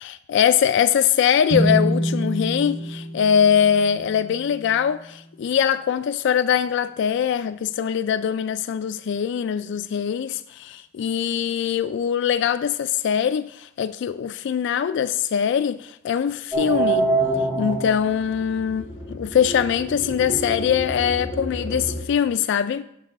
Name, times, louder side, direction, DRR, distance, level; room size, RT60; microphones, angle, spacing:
voice 1, 0.0-17.1 17.6-22.8, left 8 dB, 65° left, 0.3 m, -22 dB
sound 1, 1.5-5.1, right 1 dB, 85° right, 2.2 m, -27 dB
sound 2, 16.5-22.0, right 2 dB, 15° right, 2.5 m, -27 dB
12.5 x 5.4 x 3.8 m
head